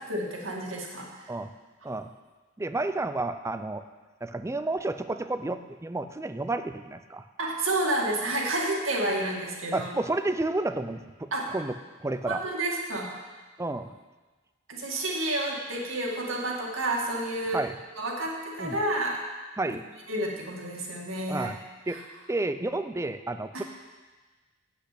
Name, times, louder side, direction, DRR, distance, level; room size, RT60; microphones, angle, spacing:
voice 1, 0.1-1.1 7.4-9.9 11.3-11.4 12.3-13.1 14.7-17.6 18.0-19.2 20.1-21.5, right 1 dB, 75° right, -1 dB, 2.2 m, -30 dB
voice 2, 2.6-3.8 4.2-7.2 9.7-12.4 13.6-13.9 17.5-17.8 18.6-18.8 19.6-19.9 21.3-21.6 21.9-22.0 22.3-23.6, right 2 dB, 15° right, 10 dB, 0.5 m, -31 dB
8.4 x 8.1 x 8.4 m, 1.3 s
head